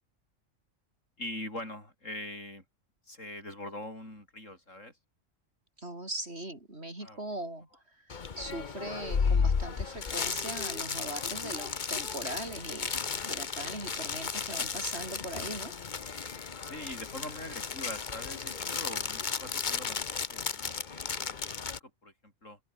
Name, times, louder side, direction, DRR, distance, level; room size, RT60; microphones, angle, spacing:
voice 1, 1.2-2.6 3.1-5.0 7.0-7.2 16.6-21.1 21.4-22.6, left 1 dB, 75° left, 8.6 m, -43 dB
voice 2, 5.8-13.0 13.2-15.7, right 1 dB, 55° right, 6.2 m, -40 dB
sound 1, 8.1-21.8, left 5 dB, 40° left, 1.2 m, -34 dB
open air
omnidirectional pair, 1.3 m